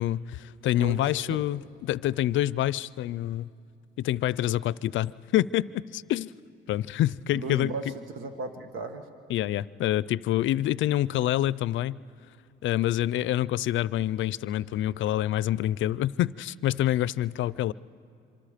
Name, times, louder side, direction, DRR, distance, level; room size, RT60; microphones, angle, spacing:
voice 1, 0.0-3.5 4.0-6.3 6.7-7.7 9.3-12.0 12.6-17.7, left 13 dB, 75° left, 20 dB, 0.5 m, -27 dB
voice 2, 0.8-1.4 7.3-9.1, right 3 dB, 90° right, 7 dB, 1.6 m, -36 dB
26.5 x 24.0 x 5.1 m, 2.7 s
cardioid pair, 90°, 20 cm